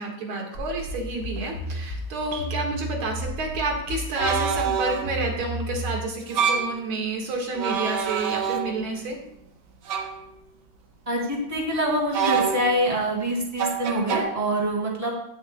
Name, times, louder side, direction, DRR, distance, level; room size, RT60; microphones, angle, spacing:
voice 1, 0.0-9.2, right 3 dB, 80° right, 1 dB, 2.6 m, -29 dB
sound 1, 0.5-6.0, left 1 dB, 50° left, 3.3 m, -33 dB
sound 2, 1.4-1.5 2.3-2.5 4.2-5.2 6.2-6.8 7.5-9.0 9.9-10.2 12.1-12.9 13.6-14.2, right 7 dB, 65° right, 1.3 m, -26 dB
voice 2, 11.1-15.1, equal, 20° right, -2 dB, 2.2 m, -25 dB
17.5 x 6.3 x 2.2 m, 0.77 s
omnidirectional pair, 2.3 m